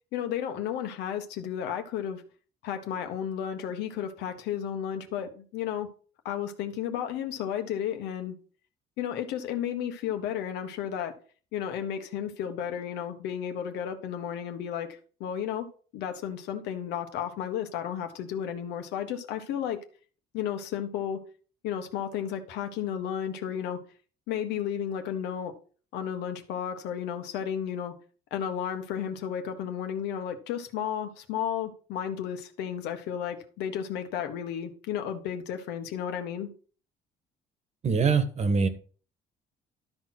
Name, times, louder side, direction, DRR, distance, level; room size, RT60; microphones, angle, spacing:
voice 1, 0.1-2.2 2.6-5.9 6.2-8.3 9.0-11.1 11.5-15.7 15.9-19.8 20.3-21.2 21.6-23.8 24.3-25.5 25.9-27.9 28.3-36.5, left 9 dB, 90° left, 1.4 m, -33 dB
voice 2, 37.8-38.7, right 5 dB, 40° right, 1.5 m, -23 dB
12.5 x 4.5 x 6.0 m
cardioid pair, 110°, 17 cm